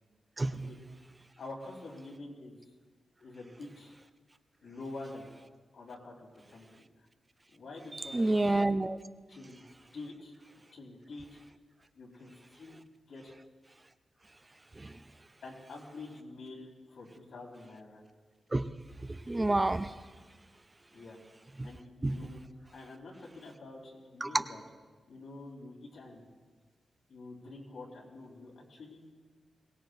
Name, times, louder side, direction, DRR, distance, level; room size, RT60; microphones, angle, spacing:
voice 1, 0.4-0.7 7.9-9.0 14.8-15.0 18.5-18.7 19.1-19.9 22.0-22.2 24.2-24.4, right 2 dB, 20° right, 9 dB, 0.5 m, -29 dB
voice 2, 1.4-2.7 3.2-4.0 4.6-5.3 5.7-7.1 7.5-8.3 9.3-9.6 9.9-10.3 10.7-11.4 12.0-12.8 13.1-13.3 15.4-18.0 20.9-21.2 21.6-22.4 22.7-24.6 25.1-26.3 27.1-29.1, left 2 dB, 85° left, -2 dB, 3.9 m, -47 dB
22.0 x 19.0 x 2.6 m, 1.4 s
wide cardioid pair, 135°, 0 cm